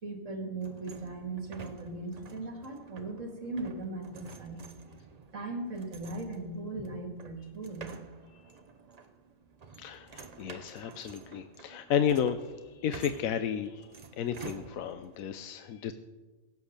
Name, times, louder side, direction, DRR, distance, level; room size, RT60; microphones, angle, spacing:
voice 1, 0.0-4.6 5.3-8.0, right 2 dB, 65° right, 3 dB, 2.6 m, -38 dB
sound 1, 0.6-15.2, right 5 dB, 35° right, 0.8 m, -50 dB
voice 2, 9.8-13.9 14.2-15.9, left 8 dB, 80° left, 9 dB, 1.1 m, -32 dB
16.5 x 8.1 x 6.6 m, 1.2 s
omnidirectional pair, 1.4 m